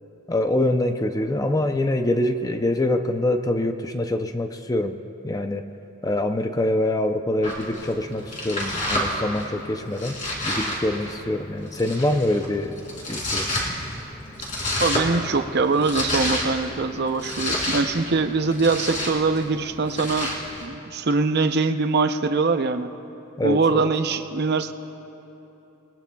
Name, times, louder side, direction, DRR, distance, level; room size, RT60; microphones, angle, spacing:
voice 1, 0.3-5.0 5.2-5.6 6.0-10.2 10.4-12.8 13.1-13.5 23.4-23.9, left 1 dB, 15° left, 7 dB, 0.5 m, -24 dB
Domestic sounds home sounds, 7.4-20.7, left 1 dB, 40° left, 3.4 m, -30 dB
voice 2, 14.8-20.3 20.6-22.9 23.4-24.7, right 4 dB, 50° right, 7 dB, 0.7 m, -23 dB
29.0 x 20.0 x 2.3 m, 3.0 s
head